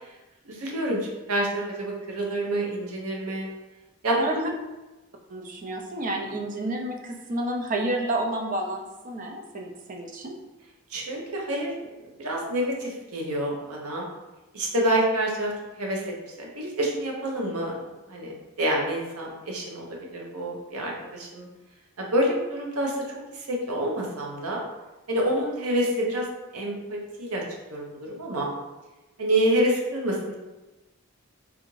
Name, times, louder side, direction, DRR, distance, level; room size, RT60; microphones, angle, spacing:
voice 1, 0.5-3.5 4.0-4.5 10.9-11.7 12.0-14.1 14.5-15.5 15.8-16.0 16.4-17.8 18.1-18.3 18.6-19.9 20.1-21.5 22.0-22.9 23.5-24.6 25.1-26.3 26.5-27.4 27.7-28.5 29.2-30.4, right 1 dB, 90° right, -1 dB, 0.7 m, -27 dB
voice 2, 5.3-10.4, right 1 dB, 35° right, 2 dB, 0.4 m, -30 dB
3.5 x 2.5 x 3.0 m, 1.1 s
head